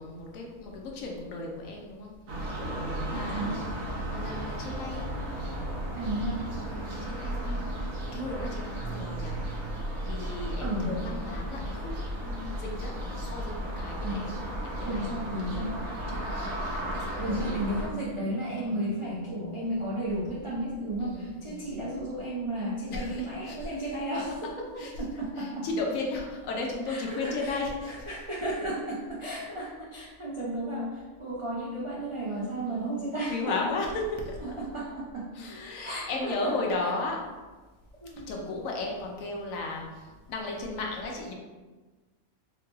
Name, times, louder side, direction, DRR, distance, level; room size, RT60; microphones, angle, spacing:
voice 1, 0.0-2.1 2.6-3.6 4.1-5.2 6.7-9.4 10.1-11.9 12.2-15.6 16.1-17.6 18.7-18.9 21.0-21.8 22.9-23.7 24.8-24.9 25.4-28.1 32.6-33.0 33.3-34.4 35.3-37.3 38.3-41.3, left 3 dB, 70° left, 0 dB, 1.0 m, -35 dB
sound 1, 2.3-17.9, right 1 dB, 70° right, 1.1 m, -34 dB
voice 2, 3.1-3.6 6.0-6.5 10.6-11.0 14.0-14.3 14.8-15.8 17.2-25.7 26.9-33.8 34.4-35.3 35.8-36.9 38.0-38.3, right 1 dB, 55° right, -7 dB, 0.3 m, -33 dB
4.7 x 2.2 x 3.0 m, 1.3 s
omnidirectional pair, 1.5 m